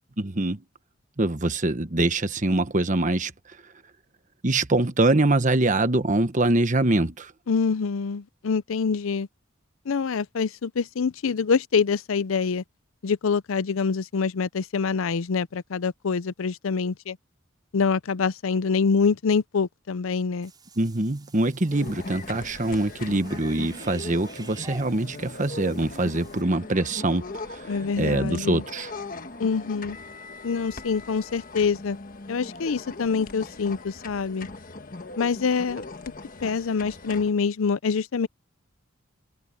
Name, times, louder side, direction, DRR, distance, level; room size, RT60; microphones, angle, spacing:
voice 1, 0.2-0.6 1.2-3.3 4.4-7.3 20.8-28.9, right 2 dB, 40° right, 1.2 m, -24 dB
voice 2, 7.5-9.3 9.9-12.6 13.0-17.2 17.7-20.5 27.7-28.6 29.4-30.0 30.4-32.0 32.3-34.5 35.2-35.8 36.4-38.3, left 5 dB, 85° left, 0.5 m, -25 dB
Cat / Bathtub (filling or washing), 20.4-26.4, right 3 dB, 20° right, 6.0 m, -49 dB
sound 1, 21.7-37.3, left 3 dB, 45° left, 1.2 m, -40 dB
head